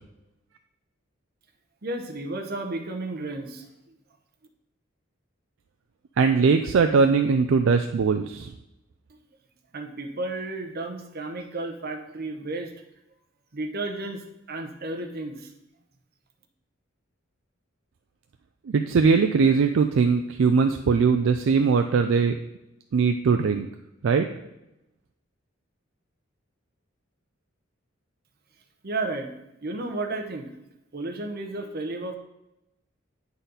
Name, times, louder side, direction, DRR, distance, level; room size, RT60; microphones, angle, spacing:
voice 1, 1.8-3.7 9.7-12.8 13.5-15.5 28.8-29.3 29.6-30.5 30.9-32.2, right 2 dB, 50° right, 4 dB, 0.9 m, -32 dB
voice 2, 6.2-8.5 18.7-22.4 22.9-23.7 24.0-24.3, right 5 dB, 65° right, 6 dB, 0.4 m, -20 dB
9.3 x 4.1 x 4.0 m, 0.90 s
head